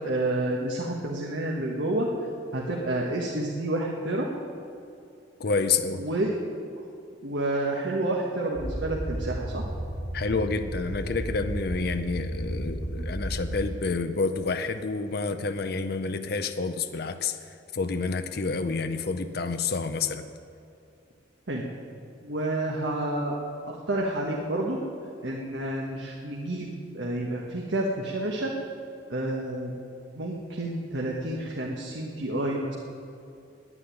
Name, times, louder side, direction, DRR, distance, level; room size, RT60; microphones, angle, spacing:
voice 1, 0.0-2.1 2.5-4.3 6.0-6.4 7.2-9.6 21.5-21.7 22.2-23.4 23.7-24.8 25.2-28.5 29.1-29.7 30.1-32.7, right 1 dB, 70° right, -2 dB, 1.4 m, -29 dB
voice 2, 5.4-6.0 10.1-20.3, left 4 dB, 55° left, 8 dB, 0.6 m, -29 dB
sound 1, 8.5-13.6, right 1 dB, 25° right, 2.4 m, -33 dB
10.0 x 9.7 x 9.9 m, 2.7 s
head